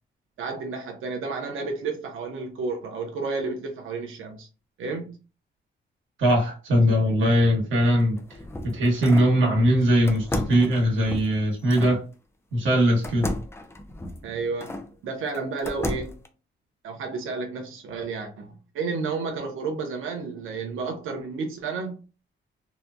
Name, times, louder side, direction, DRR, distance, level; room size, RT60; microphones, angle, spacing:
voice 1, 0.4-4.5 4.8-5.2 9.2-9.6 14.2-16.2 16.8-22.0, right 4 dB, 90° right, 0.7 m, -31 dB
voice 2, 6.2-8.4 8.6-12.0 12.5-13.3, equal, 75° right, 1.3 m, -21 dB
sound 1, 8.0-9.4 10.1-12.0 13.0-14.9 15.3-16.3, left 1 dB, 10° left, 0.4 m, -33 dB
2.8 x 2.1 x 2.4 m
cardioid pair, 95°, 20 cm